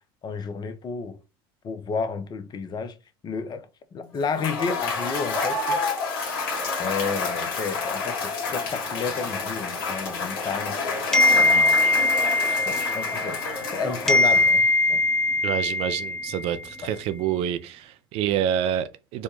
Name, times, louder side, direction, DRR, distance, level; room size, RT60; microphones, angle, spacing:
voice 1, 0.2-1.2 1.6-3.0 3.2-5.8 6.8-10.7 11.3-11.8 12.5-15.0 16.8-16.9, left 5 dB, 35° left, 0.7 m, -31 dB
Cheering / Applause / Crowd, 4.2-14.7, left 4 dB, 70° left, 1.3 m, -29 dB
sound 1, 11.1-13.7 14.1-16.6, left 2 dB, 5° left, 0.8 m, -21 dB
voice 2, 15.4-19.2, right 10 dB, 50° right, 0.5 m, -27 dB
4.3 x 2.2 x 3.0 m
hypercardioid pair, 80°, 12 cm